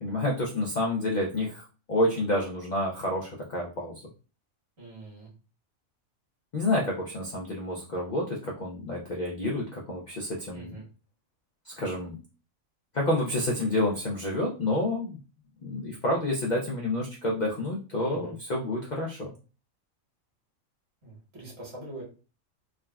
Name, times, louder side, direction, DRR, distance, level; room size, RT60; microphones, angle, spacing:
voice 1, 0.0-4.0 6.5-10.8 11.6-12.2 12.9-15.2 15.6-19.3, left 1 dB, 75° left, -2 dB, 0.4 m, -29 dB
voice 2, 4.8-5.3 10.5-10.8 16.5-16.7 18.0-18.3 21.0-22.0, right 2 dB, 50° right, -4 dB, 1.6 m, -44 dB
3.6 x 2.2 x 2.2 m, 0.35 s
omnidirectional pair, 1.4 m